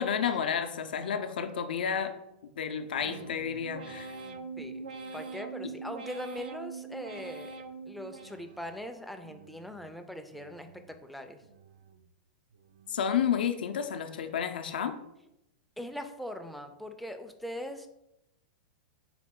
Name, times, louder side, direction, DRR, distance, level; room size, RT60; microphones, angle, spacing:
voice 1, 0.0-2.2 2.6-4.2 5.6-5.7 12.9-15.0, left 8 dB, 85° left, 8 dB, 0.4 m, -31 dB
sound 1, 3.0-8.8 9.2-9.9 10.3-11.0 11.4-12.1 12.5-13.1 13.6-14.1, right 4 dB, 80° right, 0.4 m, -44 dB
voice 2, 5.1-7.5 7.9-10.7 11.0-11.4 15.8-17.9, left 1 dB, ahead, 5 dB, 0.3 m, -41 dB
4.1 x 2.3 x 3.6 m, 0.86 s
hypercardioid pair, 130°, 5 cm